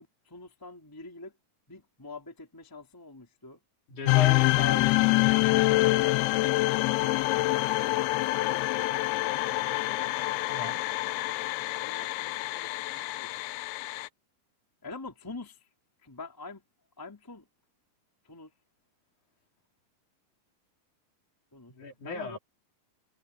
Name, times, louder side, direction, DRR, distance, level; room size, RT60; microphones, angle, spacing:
voice 1, 0.3-1.3 1.7-3.6 8.1-9.6 11.8-13.3 14.8-15.6 16.0-16.6 17.0-17.4 18.3-18.5 21.5-21.7 22.0-22.4, left 3 dB, 5° left, 2.4 m, -45 dB
voice 2, 3.9-6.0 10.5-10.8 21.7-22.4, left 4 dB, 50° left, 4.8 m, -38 dB
sound 1, 4.1-14.1, left 20 dB, 90° left, 2.6 m, -26 dB
omnidirectional pair, 4.5 m